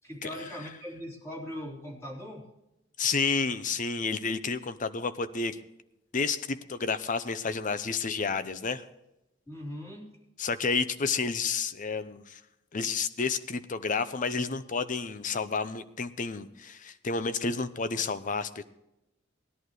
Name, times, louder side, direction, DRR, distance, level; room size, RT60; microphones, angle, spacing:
voice 1, 0.0-2.5 9.5-10.1, equal, 15° left, -3 dB, 3.4 m, -40 dB
voice 2, 3.0-5.6 6.1-8.8 10.4-12.4 12.7-18.6, left 4 dB, 40° left, 13 dB, 0.7 m, -30 dB
19.0 x 11.5 x 3.2 m, 0.89 s
head